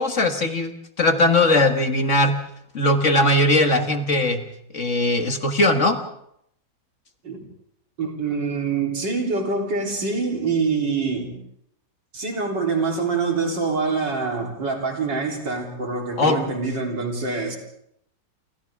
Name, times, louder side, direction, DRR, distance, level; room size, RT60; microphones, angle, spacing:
voice 1, 0.0-2.4 2.7-4.5 4.7-6.0 16.2-16.4, left 1 dB, 45° left, 5 dB, 1.8 m, -19 dB
voice 2, 8.0-11.4 12.1-17.6, right 4 dB, 75° right, 1 dB, 4.2 m, -25 dB
28.0 x 27.5 x 3.6 m, 0.74 s
omnidirectional pair, 1.9 m